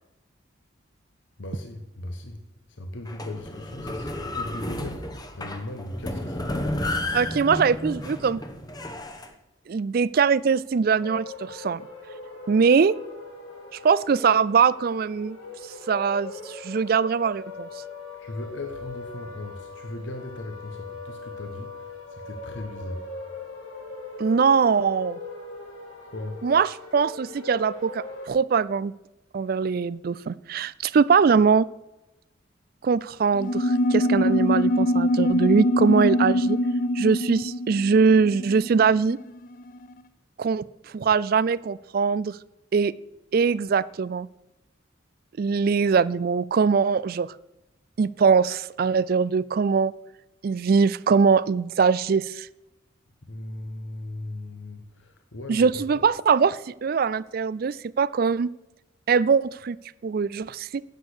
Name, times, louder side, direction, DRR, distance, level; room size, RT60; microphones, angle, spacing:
voice 1, 1.4-2.4 2.7-6.6 18.2-23.1 26.0-26.4 53.2-56.0, left 1 dB, 65° left, 5 dB, 1.2 m, -38 dB
sound 1, 3.1-9.3, left 1 dB, 20° left, 1.0 m, -32 dB
voice 2, 7.1-8.4 9.7-11.8 12.5-13.0 13.8-15.4 15.9-17.7 24.2-25.2 26.4-28.9 29.3-31.7 32.8-36.6 37.0-39.2 40.4-40.6 40.9-42.4 42.7-42.9 43.3-44.3 45.4-47.3 48.0-49.9 50.4-52.5 55.5-58.5 59.1-59.8 60.0-60.8, right 5 dB, 50° right, 20 dB, 0.3 m, -22 dB
sound 2, 11.0-28.3, left 3 dB, 85° left, 3.4 m, -40 dB
sound 3, 33.4-39.3, left 1 dB, 45° left, 0.6 m, -23 dB
10.5 x 8.5 x 6.2 m, 0.96 s
head